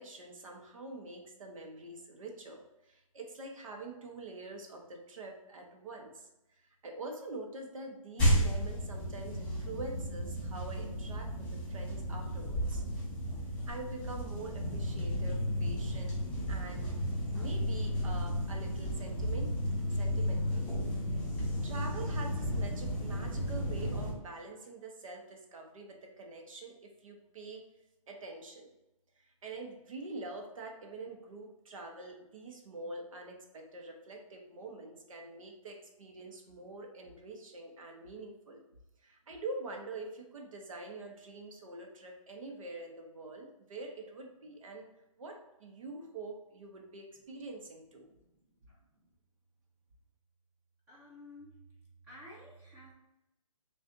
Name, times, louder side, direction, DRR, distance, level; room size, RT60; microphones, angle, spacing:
voice 1, 0.0-12.8 13.7-16.2 16.5-16.9 17.3-19.6 19.9-20.7 21.6-27.7 28.1-28.7 29.2-38.6 39.0-44.9 45.2-48.1, right 2 dB, 70° right, 2 dB, 1.0 m, -45 dB
sound 1, 8.2-24.1, equal, 5° left, 1.5 m, -33 dB
voice 2, 48.7-49.1 50.9-51.6 52.0-52.9, left 1 dB, 15° right, -5 dB, 0.7 m, -53 dB
6.3 x 2.5 x 2.6 m, 0.92 s
hypercardioid pair, 155°, 18 cm